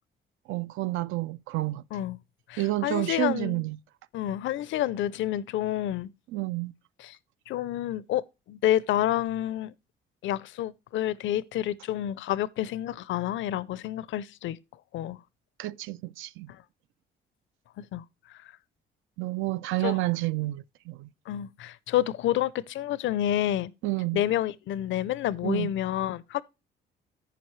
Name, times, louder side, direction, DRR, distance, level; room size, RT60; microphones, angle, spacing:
voice 1, 0.5-1.8 2.6-3.8 6.3-6.7 15.6-16.5 19.2-21.1 23.8-24.2 25.4-25.7, right 18 dB, 80° right, 0.4 m, -30 dB
voice 2, 2.5-3.6 4.1-6.1 7.0-7.2 7.5-8.2 8.5-9.7 10.2-14.6 14.9-15.2 16.5-16.6 17.8-18.0 19.8-20.0 21.3-23.7 24.1-26.4, left 12 dB, 75° left, 0.5 m, -29 dB
14.0 x 5.1 x 3.1 m
cardioid pair, 90°, 20 cm